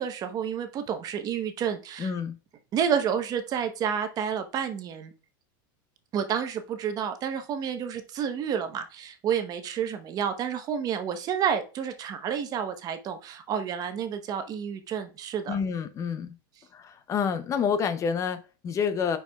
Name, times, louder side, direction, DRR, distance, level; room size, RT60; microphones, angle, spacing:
voice 1, 0.0-2.1 2.7-5.1 6.1-15.6, right 8 dB, 35° right, 0.9 m, -30 dB
voice 2, 2.0-2.4 15.5-16.3 16.7-19.2, left 6 dB, 25° left, 0.5 m, -28 dB
9.8 x 4.6 x 2.2 m
supercardioid pair, 135°, 11 cm